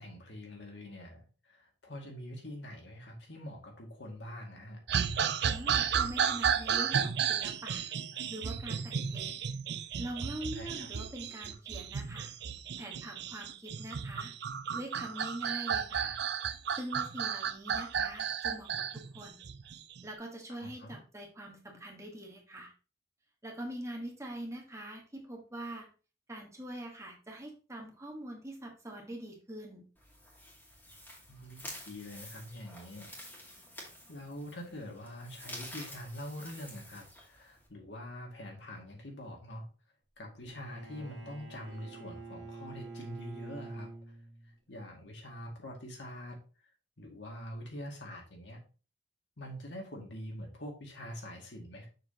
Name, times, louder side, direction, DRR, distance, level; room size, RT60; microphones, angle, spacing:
voice 1, 0.0-4.8 10.6-10.9 20.6-21.0 31.3-33.1 34.1-39.7 40.2-44.2 44.7-46.4 47.0-48.6 49.4-51.9, left 1 dB, 70° left, 0 dB, 2.2 m, -45 dB
sound 1, 4.9-20.0, right 7 dB, 65° right, 0.5 m, -33 dB
voice 2, 5.4-7.9 8.3-9.4 10.0-12.3 12.8-14.3 14.7-16.2 16.8-19.4 20.0-22.7 23.4-25.9 26.3-29.8, right 1 dB, 15° right, 0 dB, 1.5 m, -43 dB
sound 2, 30.0-37.7, left 1 dB, 10° left, 2.0 m, -49 dB
Bowed string instrument, 40.5-44.6, right 3 dB, 85° right, 1.8 m, -46 dB
6.6 x 6.2 x 2.9 m, 0.35 s
head